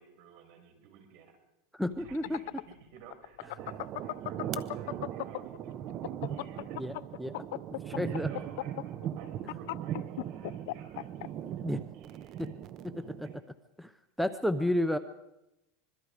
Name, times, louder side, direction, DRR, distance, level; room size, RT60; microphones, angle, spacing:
voice 1, 0.0-1.4 2.0-6.8 7.9-12.5 13.2-13.3, right 7 dB, 60° right, 5 dB, 6.0 m, -53 dB
voice 2, 1.7-2.4 6.8-6.9 7.2-7.3 7.8-8.3 11.6-11.8 12.4-12.5 12.8-13.4 13.8-13.9 14.2-15.0, left 1 dB, ahead, 11 dB, 0.7 m, -31 dB
sound 1, 2.0-5.6 5.9-11.3, left 19 dB, 70° left, 0.6 m, -36 dB
sound 2, 3.6-13.4, right 10 dB, 40° right, 0.9 m, -39 dB
25.5 x 22.5 x 5.0 m, 0.91 s
supercardioid pair, 145°, 0 cm